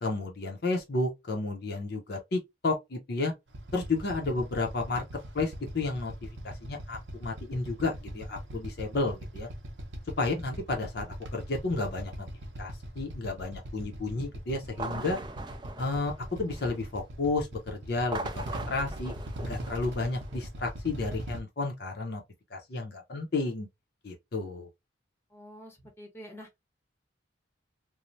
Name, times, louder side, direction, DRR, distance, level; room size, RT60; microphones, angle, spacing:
voice 1, 0.0-3.3 3.7-5.0 5.3-9.5 10.2-12.1 12.6-15.2 15.8-19.1 19.4-22.2 22.5-23.7 24.0-24.7, left 3 dB, 55° left, 0.6 m, -32 dB
Motorcycle / Idling, 3.5-21.4, equal, 65° right, 0.7 m, -41 dB
sound 1, 14.7-16.9 17.9-20.5, right 2 dB, 20° right, 0.3 m, -41 dB
voice 2, 25.3-26.5, equal, 10° left, 0.8 m, -47 dB
3.1 x 2.0 x 2.6 m
head